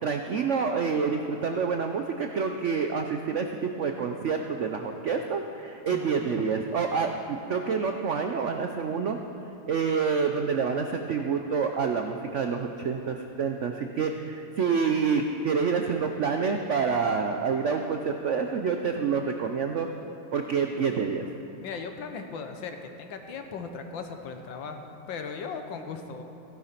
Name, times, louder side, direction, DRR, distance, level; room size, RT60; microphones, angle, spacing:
voice 1, 0.0-9.2 9.7-19.9 20.3-21.3, right 5 dB, 90° right, 5 dB, 0.6 m, -27 dB
voice 2, 21.6-26.2, left 5 dB, 70° left, 6 dB, 1.7 m, -38 dB
15.5 x 11.0 x 5.8 m, 2.7 s
omnidirectional pair, 2.2 m